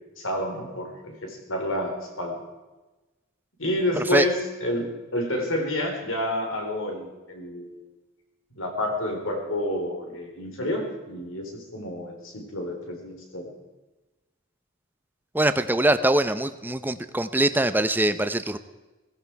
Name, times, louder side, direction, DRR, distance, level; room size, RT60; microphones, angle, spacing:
voice 1, 0.2-2.4 3.6-7.8 8.6-13.5, left 1 dB, 75° left, 2 dB, 4.3 m, -29 dB
voice 2, 4.0-4.3 15.3-18.6, right 1 dB, 10° right, 11 dB, 0.7 m, -23 dB
17.0 x 15.5 x 4.7 m, 1.1 s
head